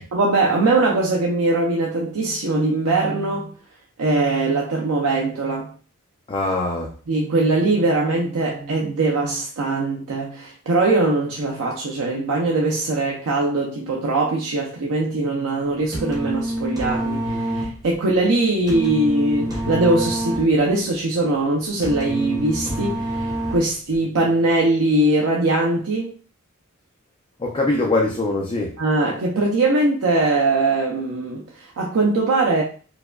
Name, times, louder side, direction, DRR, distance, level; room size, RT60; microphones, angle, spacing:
voice 1, 0.0-3.5 4.0-5.7 7.1-26.1 28.8-32.6, right 2 dB, 85° right, 0.5 m, -21 dB
voice 2, 6.3-6.9 27.4-28.8, left 2 dB, 25° left, 0.4 m, -22 dB
sound 1, 15.9-23.9, right 1 dB, 15° right, 0.8 m, -27 dB
4.6 x 2.2 x 2.3 m
head